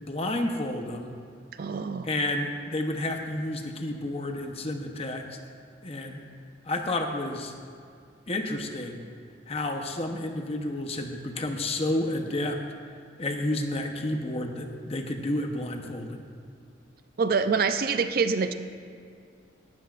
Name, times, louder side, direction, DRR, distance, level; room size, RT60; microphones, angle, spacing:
voice 1, 0.0-1.1 2.0-5.2 5.8-6.2 6.7-7.5 8.3-9.0 9.5-12.6 13.2-16.2, left 1 dB, 30° left, 4 dB, 0.9 m, -30 dB
voice 2, 1.6-2.1 17.2-18.5, right 5 dB, 50° right, 9 dB, 0.4 m, -25 dB
18.0 x 12.0 x 2.5 m, 2.2 s
head